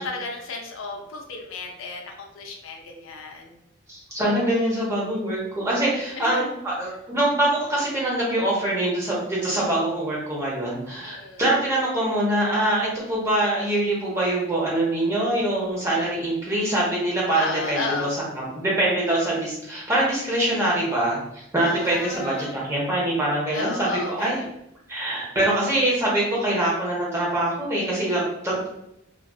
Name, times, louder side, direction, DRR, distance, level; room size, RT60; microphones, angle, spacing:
voice 1, 0.0-3.6 6.2-6.6 11.0-11.4 17.3-18.1 21.6-22.6 23.5-24.5, left 3 dB, 80° left, 2 dB, 0.4 m, -33 dB
voice 2, 3.9-18.1 18.4-24.4 24.9-28.7, right 1 dB, 15° right, -6 dB, 0.7 m, -24 dB
2.4 x 2.3 x 2.3 m, 0.83 s
head